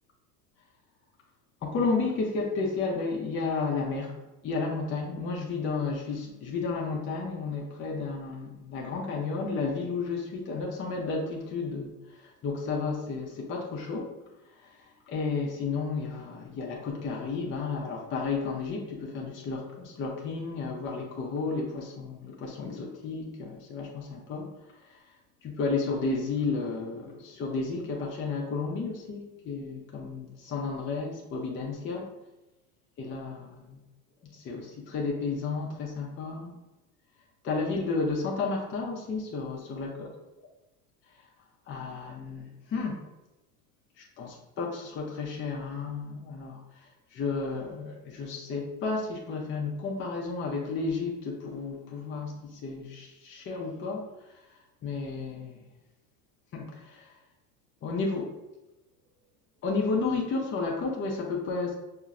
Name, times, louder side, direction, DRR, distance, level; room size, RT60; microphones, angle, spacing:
voice 1, 1.6-4.2 4.4-11.9 12.4-14.1 14.6-14.7 15.1-24.5 25.4-32.1 33.0-33.8 34.3-36.5 37.4-40.1 41.7-43.1 44.0-46.6 47.1-54.0 54.8-55.6 56.5-57.1 57.8-58.3 59.6-61.7, left 4 dB, 25° left, -1 dB, 0.6 m, -32 dB
5.5 x 2.1 x 2.4 m, 1.0 s
hypercardioid pair, 85°, 48 cm